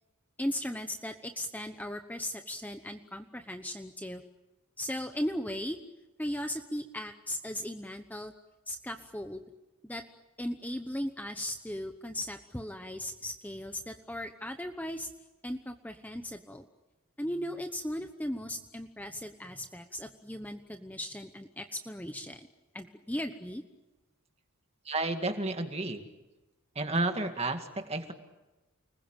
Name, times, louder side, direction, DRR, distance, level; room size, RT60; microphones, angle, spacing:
voice 1, 0.4-4.2 4.8-5.8 6.2-8.3 8.7-9.4 9.8-10.0 10.4-15.1 15.4-16.7 17.2-22.5 22.7-23.6, left 1 dB, 5° left, 6 dB, 1.0 m, -37 dB
voice 2, 24.9-26.1 26.8-28.1, right 2 dB, 25° right, 6 dB, 2.1 m, -31 dB
29.5 x 21.0 x 9.0 m, 1.1 s
head